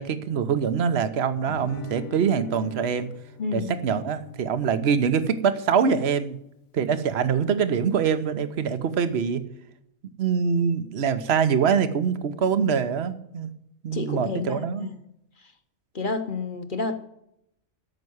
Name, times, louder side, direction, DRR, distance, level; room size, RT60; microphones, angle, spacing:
voice 1, 0.0-3.1 3.5-6.4 6.7-9.4 10.2-13.5 13.8-14.9, right 6 dB, 50° right, 11 dB, 1.1 m, -24 dB
Guitar, 1.5-6.5, left 8 dB, 75° left, 1.3 m, -45 dB
voice 2, 13.9-14.9 15.9-17.1, left 3 dB, 40° left, 7 dB, 1.2 m, -30 dB
13.0 x 6.1 x 9.4 m, 0.77 s
omnidirectional pair, 1.5 m